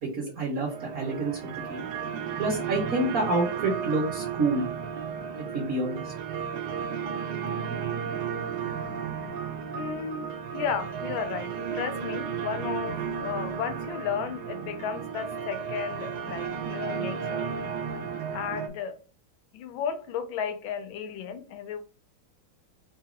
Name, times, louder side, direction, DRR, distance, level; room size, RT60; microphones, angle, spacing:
voice 1, 0.0-1.9 2.4-4.6 5.4-6.1, right 2 dB, 50° right, 1.4 m, -28 dB
sound 1, 0.7-18.7, right 7 dB, 70° right, 1.1 m, -33 dB
voice 2, 9.7-17.5 18.3-19.0 19.5-21.8, left 7 dB, 80° left, 1.4 m, -34 dB
3.9 x 2.7 x 3.7 m
omnidirectional pair, 2.2 m